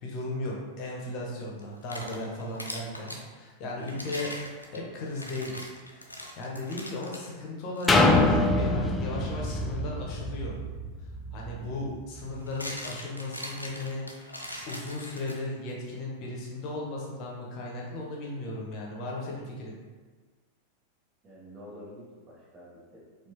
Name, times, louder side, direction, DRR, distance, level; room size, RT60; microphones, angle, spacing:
voice 1, 0.0-4.3 4.7-5.6 5.9-10.6 11.3-14.4 14.7-19.7, left 2 dB, 40° left, -2 dB, 0.9 m, -36 dB
sound 1, 1.6-3.3 3.8-7.3 7.8-7.9 8.6-8.8 10.9-11.0 12.2-15.7, left 1 dB, 85° left, 0.4 m, -41 dB
sound 2, 7.9-11.7 12.2-12.3, left 2 dB, 10° left, 0.3 m, -25 dB
voice 2, 11.5-11.9 21.2-23.3, equal, 25° right, -9 dB, 1.3 m, -48 dB
4.4 x 2.5 x 3.0 m, 1.4 s
figure-of-eight pair, 90°, 0 cm